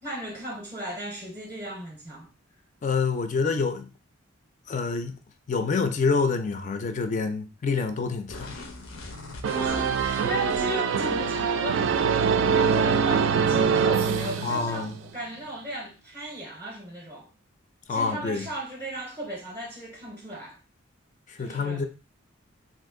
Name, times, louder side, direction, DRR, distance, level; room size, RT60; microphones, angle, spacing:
voice 1, 0.0-2.3 9.5-17.3 17.9-20.6 21.4-21.9, right 1 dB, 20° right, 0.6 m, -36 dB
voice 2, 2.8-3.9 4.7-5.1 5.5-8.5 14.4-14.9 17.9-18.4 21.3-21.9, left 4 dB, 35° left, 0.4 m, -27 dB
sound 1, 8.3-11.0, left 2 dB, 90° left, 0.7 m, -41 dB
sound 2, 9.4-15.1, right 6 dB, 65° right, 0.3 m, -24 dB
2.6 x 2.5 x 3.6 m
head